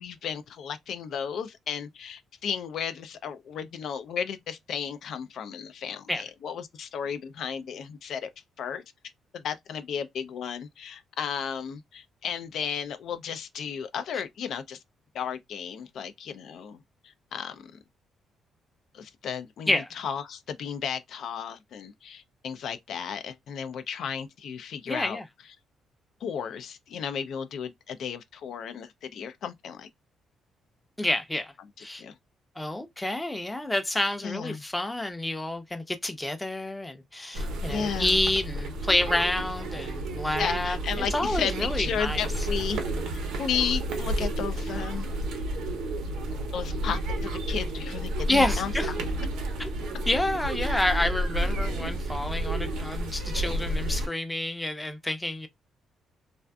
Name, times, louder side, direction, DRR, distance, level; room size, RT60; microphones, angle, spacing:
voice 1, 0.0-8.3 8.6-8.8 9.3-14.8 15.1-17.7 18.9-25.2 26.2-29.9 32.0-32.1 34.2-34.6 37.7-38.2 40.4-42.8 43.4-45.1 46.5-48.7, left 7 dB, 70° left, 0.3 m, -34 dB
voice 2, 24.9-25.2 31.0-31.5 31.8-32.0 32.6-42.3 48.3-48.9 49.6-49.7 50.1-55.5, left 1 dB, 10° left, 0.5 m, -29 dB
sound 1, 37.3-54.1, right 1 dB, 85° right, 0.7 m, -31 dB
2.4 x 2.4 x 2.2 m
cardioid pair, 90°, 0 cm